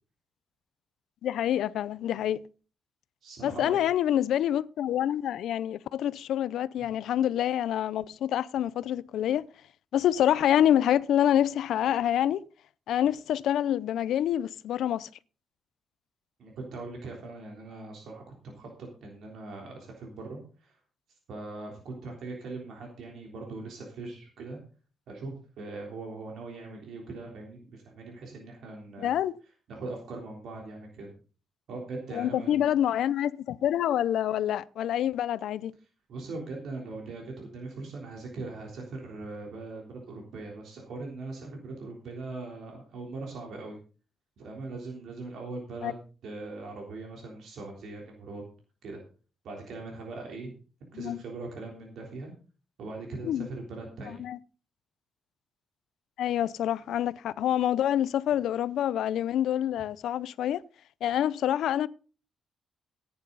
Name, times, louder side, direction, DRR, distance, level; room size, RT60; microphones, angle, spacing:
voice 1, 1.2-2.4 3.4-9.4 9.9-12.4 12.9-15.1 29.0-29.3 32.1-35.7 45.8-45.9 50.9-51.2 53.2-53.5 54.1-54.4 56.2-60.6 61.0-61.9, left 11 dB, 85° left, 0.5 m, -27 dB
voice 2, 3.2-3.8 6.8-6.9 16.4-20.8 21.3-24.6 25.1-29.2 29.7-31.1 31.7-32.6 36.1-43.8 44.4-46.0 46.2-48.4 48.8-49.0 49.4-50.5 50.9-52.3 52.8-54.2, right 3 dB, 70° right, 3.5 m, -40 dB
15.5 x 9.7 x 4.0 m
cardioid pair, 155°, 0 cm